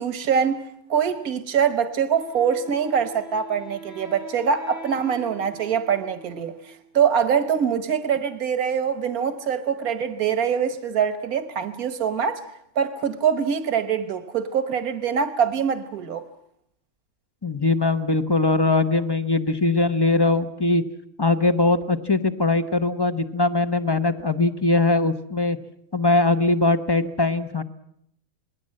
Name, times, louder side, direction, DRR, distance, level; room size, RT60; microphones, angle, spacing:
voice 1, 0.0-12.4 12.7-16.2, right 7 dB, 85° right, 1.6 m, -24 dB
Wind instrument woodwind instrument, 2.1-6.9, right 1 dB, 65° left, 4.8 m, -43 dB
voice 2, 17.4-20.8 21.2-25.6 25.9-27.6, left 3 dB, 20° left, 0.8 m, -21 dB
27.0 x 20.0 x 7.6 m
omnidirectional pair, 1.5 m